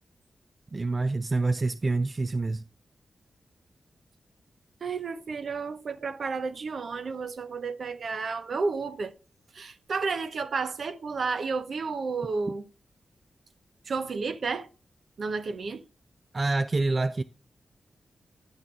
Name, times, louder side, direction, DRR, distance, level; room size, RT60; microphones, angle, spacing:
voice 1, 0.7-2.6 16.3-17.2, right 3 dB, 30° right, 0.3 m, -26 dB
voice 2, 4.8-9.1 9.5-12.6 13.9-14.7 15.2-15.8, right 4 dB, 60° right, 0.7 m, -31 dB
10.5 x 6.0 x 3.7 m
wide cardioid pair, 115°, 0 cm